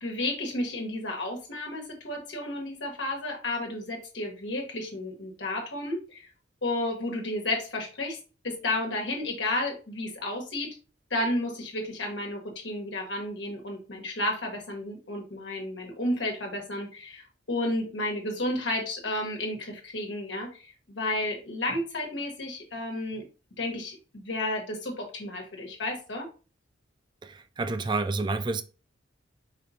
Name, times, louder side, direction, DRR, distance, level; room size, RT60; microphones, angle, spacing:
voice 1, 0.0-6.3 6.6-8.2 8.4-10.7 11.1-23.2 23.6-26.3, left 1 dB, 70° left, 1.4 m, -32 dB
voice 2, 27.2-28.6, right 3 dB, 25° right, 0.3 m, -29 dB
5.0 x 3.0 x 2.7 m
head